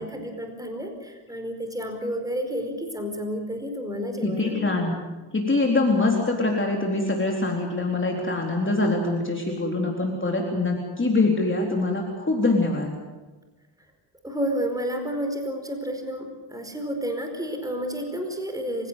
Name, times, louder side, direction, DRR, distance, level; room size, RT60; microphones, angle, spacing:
voice 1, 0.0-4.8 14.2-18.9, equal, 5° right, 5 dB, 4.8 m, -31 dB
voice 2, 4.2-4.9 5.3-12.9, left 2 dB, 25° left, 0 dB, 4.0 m, -24 dB
27.0 x 16.5 x 8.3 m, 1.2 s
cardioid pair, 95°, 48 cm